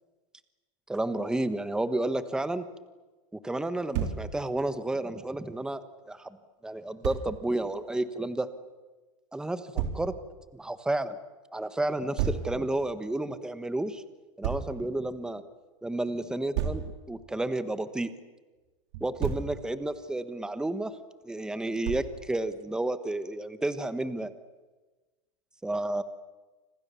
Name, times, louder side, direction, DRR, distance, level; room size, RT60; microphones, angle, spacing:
voice 1, 0.9-2.6 3.3-5.8 6.1-6.4 6.6-8.5 9.3-10.1 10.5-11.2 11.5-14.0 14.4-15.4 15.8-18.1 19.0-21.0 21.2-24.3 25.6-26.0, right 2 dB, 5° right, 11 dB, 1.3 m, -31 dB
Thump thud, 3.9-4.2 7.0-7.2 9.8-10.0 12.2-12.5 14.4-14.7 16.5-16.9 18.9-19.5 21.8-22.2, right 8 dB, 60° right, 3.9 m, -30 dB
29.0 x 26.5 x 7.1 m, 1.2 s
supercardioid pair, 150°, 17 cm